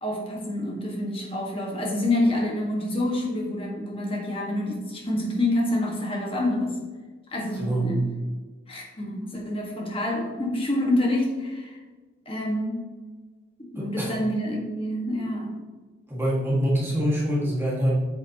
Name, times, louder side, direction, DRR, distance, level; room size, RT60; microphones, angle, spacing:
voice 1, 0.0-6.8 7.3-8.0 8.7-11.8 12.2-12.9 13.6-15.6, left 1 dB, 25° left, -1 dB, 1.5 m, -27 dB
voice 2, 7.6-7.9 13.8-14.1 16.1-17.9, equal, 10° right, -5 dB, 1.8 m, -25 dB
8.5 x 7.0 x 2.9 m, 1.3 s
head